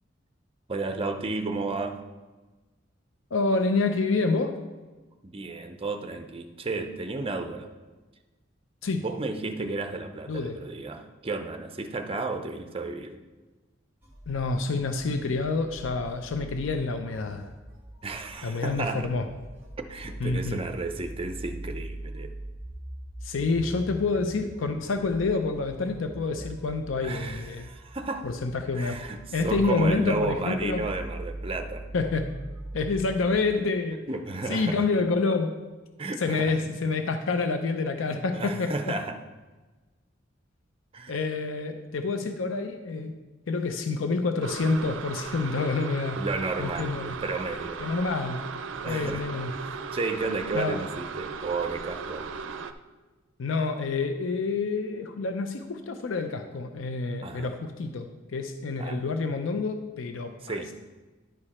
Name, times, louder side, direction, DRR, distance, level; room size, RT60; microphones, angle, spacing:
voice 1, 0.7-2.0 5.2-7.7 9.0-13.2 18.0-19.1 19.9-22.3 26.3-26.5 27.0-28.3 28.7-31.9 34.1-34.8 36.0-36.5 38.3-39.2 40.9-41.2 46.2-47.8 48.8-49.2 49.6-52.3 57.2-57.5 58.8-59.0 60.4-60.7, right 3 dB, 30° right, 7 dB, 0.6 m, -33 dB
voice 2, 3.3-4.6 8.8-9.0 10.3-10.6 14.3-17.5 18.4-19.3 20.2-20.6 23.2-27.7 28.2-29.0 29.3-30.9 31.9-32.3 32.7-34.0 34.5-35.5 36.2-38.9 41.1-43.2 43.5-46.3 46.6-47.1 47.8-48.4 48.8-49.5 50.5-50.8 53.4-60.6, left 3 dB, 90° left, 7 dB, 0.6 m, -28 dB
sound 1, 14.0-33.6, right 1 dB, 10° right, 1.5 m, -42 dB
sound 2, 44.4-52.7, right 5 dB, 75° right, 0.4 m, -37 dB
10.5 x 4.9 x 4.2 m, 1.2 s
head